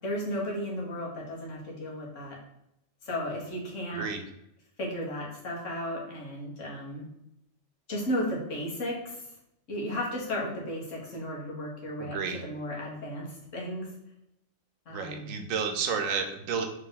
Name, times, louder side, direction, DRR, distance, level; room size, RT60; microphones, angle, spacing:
voice 1, 0.0-2.4 3.0-4.0 4.8-7.0 7.9-9.2 9.7-13.9 14.9-15.3, equal, 75° left, -4 dB, 1.6 m, -34 dB
voice 2, 3.9-4.2 12.0-12.4 14.9-16.7, right 5 dB, 85° right, 5 dB, 1.1 m, -31 dB
3.4 x 3.3 x 3.9 m, 0.81 s
omnidirectional pair, 1.3 m